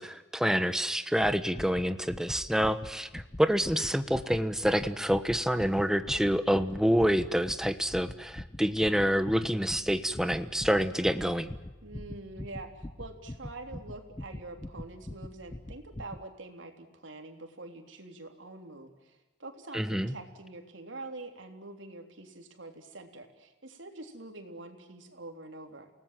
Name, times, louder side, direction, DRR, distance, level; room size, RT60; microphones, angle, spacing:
voice 1, 0.0-11.5 19.7-20.1, equal, 5° right, 10 dB, 1.2 m, -27 dB
sound 1, 1.2-16.3, left 1 dB, 20° left, 0.7 m, -44 dB
voice 2, 11.8-25.9, right 2 dB, 85° right, 4 dB, 3.6 m, -45 dB
29.5 x 19.0 x 7.7 m, 1.1 s
head